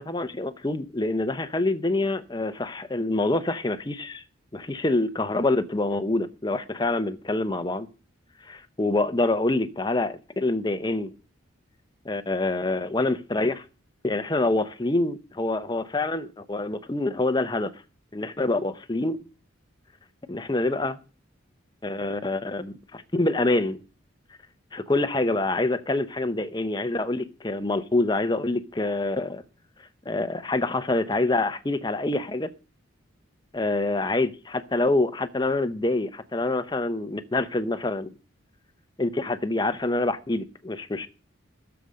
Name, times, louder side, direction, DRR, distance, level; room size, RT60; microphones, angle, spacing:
voice 1, 0.0-4.2 4.5-7.9 8.4-11.1 12.0-13.6 14.0-17.7 18.1-19.2 20.3-21.0 21.8-23.8 24.7-29.4 30.1-32.5 33.5-38.1 39.0-41.1, left 2 dB, 20° left, 0.7 m, -26 dB
15.0 x 7.0 x 6.4 m
head